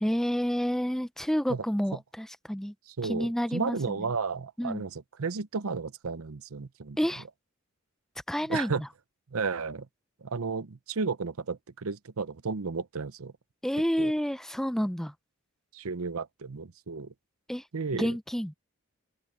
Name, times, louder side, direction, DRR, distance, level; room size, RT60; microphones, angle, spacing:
voice 1, 0.0-2.7 3.0-3.8 4.6-4.8 7.0-7.2 8.3-8.9 13.6-15.1 17.5-17.6 18.0-18.5, equal, ahead, 0.4 m, -29 dB
voice 2, 3.0-7.0 8.5-8.8 9.3-9.9 10.2-13.3 14.0-14.1 15.7-17.1 17.7-18.2, right 4 dB, 85° right, 0.8 m, -33 dB
open air
head